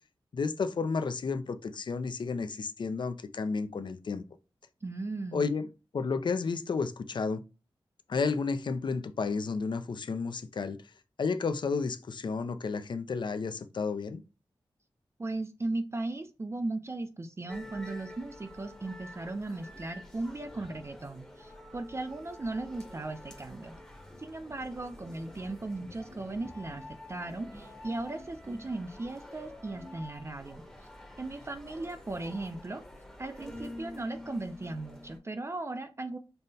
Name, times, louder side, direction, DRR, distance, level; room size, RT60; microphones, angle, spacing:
voice 1, 0.3-4.2 5.3-5.7 5.9-7.4 8.1-10.8 11.2-14.2, left 4 dB, 55° left, 0.4 m, -32 dB
voice 2, 4.8-5.5 15.2-23.8 24.2-26.8 27.1-30.6 31.2-32.8 33.2-36.2, right 2 dB, 30° right, 0.4 m, -37 dB
sound 1, 17.5-35.2, left 1 dB, 5° left, 0.8 m, -48 dB
5.3 x 2.1 x 2.7 m
wide cardioid pair, 90°, 9 cm